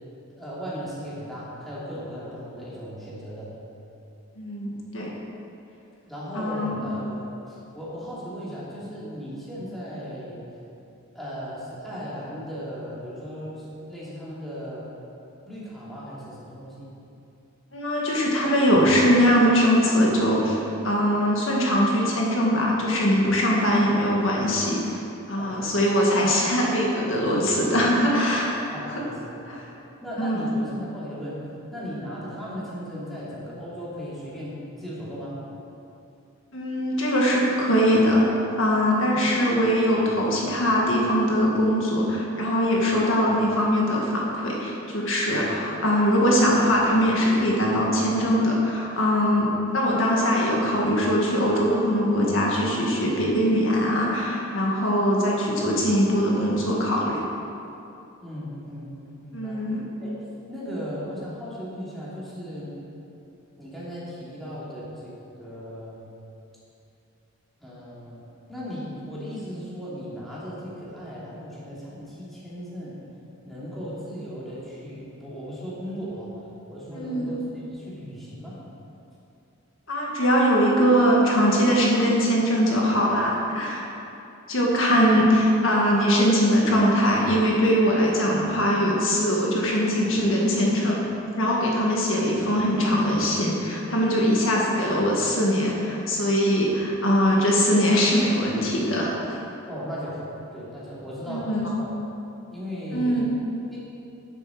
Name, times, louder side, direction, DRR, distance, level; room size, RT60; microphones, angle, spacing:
voice 1, 0.4-3.5 6.1-10.4 11.1-14.9 15.5-16.9 25.4-25.7 28.7-29.6 30.0-31.4 31.7-35.4 39.1-39.2 58.2-59.6 60.0-62.7 63.6-65.1 65.4-66.0 67.6-68.2 68.5-73.0 73.4-76.3 76.7-78.6 99.7-101.9 102.5-103.2 103.7-103.8, equal, ahead, -9 dB, 2.8 m, -36 dB
voice 2, 4.4-5.1 6.3-6.8 17.7-25.0 25.3-28.5 29.5-29.6 30.2-30.4 36.5-38.3 38.6-57.2 59.3-59.8 76.9-77.3 79.9-83.9 84.5-91.0 91.4-99.1 101.3-101.7 102.9-103.3, equal, 65° left, -3 dB, 1.8 m, -22 dB
10.0 x 9.2 x 6.4 m, 2.8 s
head